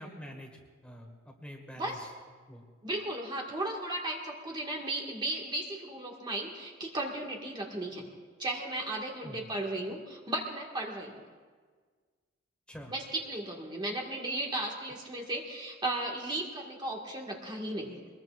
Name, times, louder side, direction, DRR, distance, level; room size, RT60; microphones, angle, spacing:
voice 1, 0.0-2.1 2.5-2.6 9.2-9.5 12.7-12.9, equal, 5° left, 1 dB, 1.8 m, -46 dB
voice 2, 2.8-8.1 8.4-11.2 12.9-18.0, right 1 dB, 25° right, 0 dB, 1.8 m, -35 dB
24.0 x 21.0 x 2.5 m, 1.5 s
head